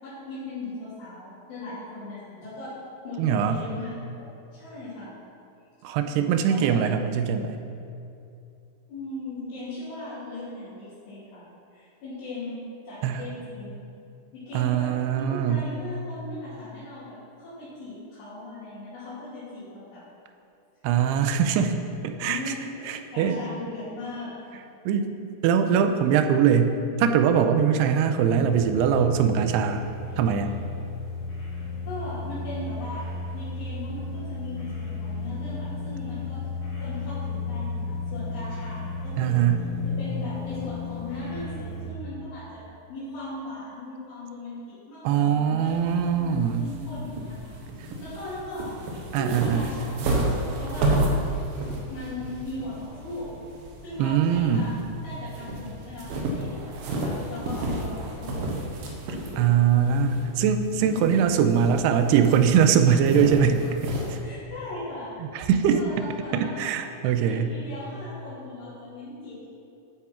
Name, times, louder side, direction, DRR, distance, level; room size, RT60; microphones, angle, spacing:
voice 1, 0.0-2.7 3.0-5.1 6.5-6.8 8.9-11.4 11.7-12.6 12.8-13.9 14.3-20.0 21.4-21.6 22.2-24.3 31.8-36.5 36.8-39.4 39.8-45.8 46.1-48.7 49.1-50.2 50.6-51.1 51.9-53.3 53.8-56.6 57.0-58.5 59.8-60.0 60.7-61.1 64.2-65.1 65.7-66.7 67.2-69.4, left 2 dB, 85° left, -13 dB, 5.1 m, -38 dB
voice 2, 3.2-3.6 5.8-7.6 13.0-13.2 14.5-15.6 20.8-21.8 22.0-22.4 22.9-23.4 24.9-25.1 25.4-29.8 30.2-30.5 39.2-39.6 45.0-46.7 49.1-49.7 54.0-54.7 59.4-63.7 64.1-64.2 65.3-65.9 66.3-67.5, right 7 dB, 90° right, 7 dB, 2.7 m, -22 dB
sound 1, 28.4-41.9, left 3 dB, 45° left, 3.7 m, -34 dB
sound 2, 45.7-64.2, right 1 dB, 70° right, 2.7 m, -32 dB
12.5 x 8.4 x 4.6 m, 2.6 s
omnidirectional pair, 4.7 m